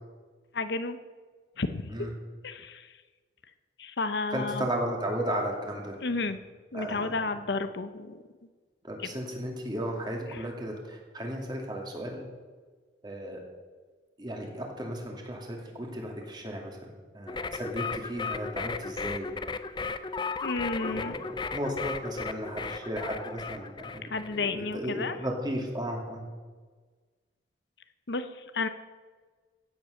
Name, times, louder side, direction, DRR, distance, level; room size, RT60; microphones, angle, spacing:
voice 1, 0.5-1.0 1.6-1.9 2.4-3.0 3.8-4.7 6.0-6.4 6.7-8.2 9.0-9.1 10.3-10.5 20.4-21.2 24.0-25.2 28.1-28.7, left 3 dB, 65° left, 10 dB, 0.7 m, -32 dB
voice 2, 4.3-6.2 6.7-7.1 8.8-12.2 13.0-13.4 14.2-16.8 17.1-19.3 20.8-21.2 21.5-24.0 24.3-26.2, equal, 25° right, 0 dB, 2.5 m, -34 dB
sound 1, 17.3-24.4, left 4 dB, 25° left, 0.5 m, -35 dB
16.0 x 8.0 x 6.5 m, 1.4 s
head